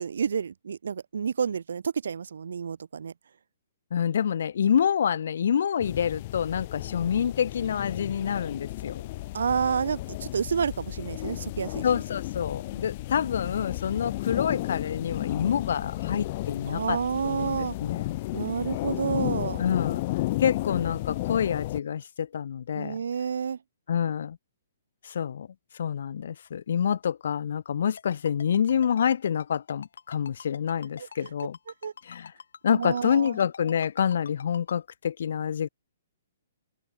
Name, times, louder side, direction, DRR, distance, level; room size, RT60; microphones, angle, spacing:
voice 1, 0.0-3.1 9.3-11.8 16.6-17.7 18.3-19.6 22.7-23.6 31.0-31.3 31.8-31.9 32.7-33.3, right 6 dB, 80° right, 1.4 m, -29 dB
voice 2, 3.9-9.1 11.8-17.0 17.2-18.1 19.6-20.0 20.4-23.0 23.9-24.4 25.0-25.5 25.8-31.6 32.0-32.3 32.6-35.7, left 8 dB, 65° left, 0.9 m, -27 dB
sound 1, 5.8-21.8, left 18 dB, 30° left, 0.6 m, -33 dB
Ringtone, 28.0-34.7, left 6 dB, 85° left, 6.4 m, -44 dB
open air
hypercardioid pair, 170°, 0 cm